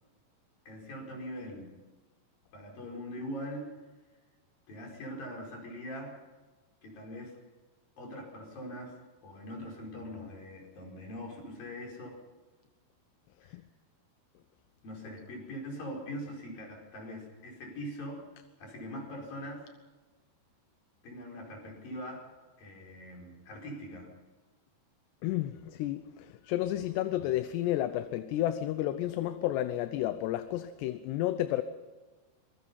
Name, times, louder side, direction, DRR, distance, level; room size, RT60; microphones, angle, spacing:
voice 1, 0.7-1.7 2.5-3.7 4.7-6.2 6.8-7.4 8.0-9.0 9.2-12.2 13.5-13.6 14.8-18.3 18.6-19.7 21.0-24.1, equal, 55° left, 6.8 m, -42 dB
voice 2, 25.2-31.6, left 13 dB, 85° left, 2.9 m, -31 dB
25.0 x 22.0 x 5.6 m
omnidirectional pair, 4.9 m